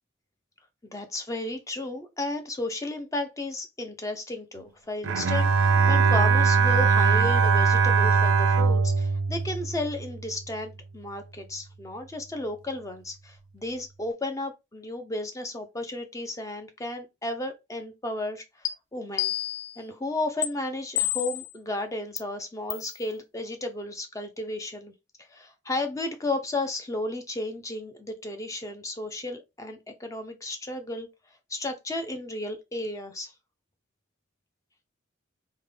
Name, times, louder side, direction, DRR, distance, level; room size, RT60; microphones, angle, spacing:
voice 1, 0.9-18.4 18.9-19.3 19.8-24.9 25.2-31.1 31.5-33.3, left 2 dB, 15° left, 0.4 m, -33 dB
Bowed string instrument, 5.0-10.4, right 5 dB, 70° right, 0.4 m, -21 dB
sound 1, 18.7-18.8 19.2-19.8 20.4-20.5 21.0-21.5 22.2-22.3 22.7-22.9, left 13 dB, 70° left, 0.5 m, -28 dB
3.5 x 2.2 x 3.2 m
head